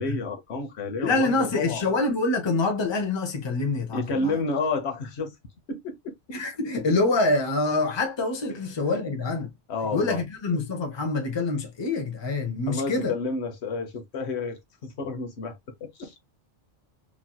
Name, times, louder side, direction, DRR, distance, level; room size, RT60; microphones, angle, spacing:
voice 1, 0.0-1.8 3.9-5.3 5.7-6.1 8.5-8.6 9.7-10.2 12.7-16.1, left 3 dB, 70° left, 1.0 m, -30 dB
voice 2, 1.0-4.4 6.3-9.5 9.9-13.2, left 3 dB, 25° left, 0.7 m, -26 dB
3.0 x 2.8 x 2.2 m
omnidirectional pair, 1.2 m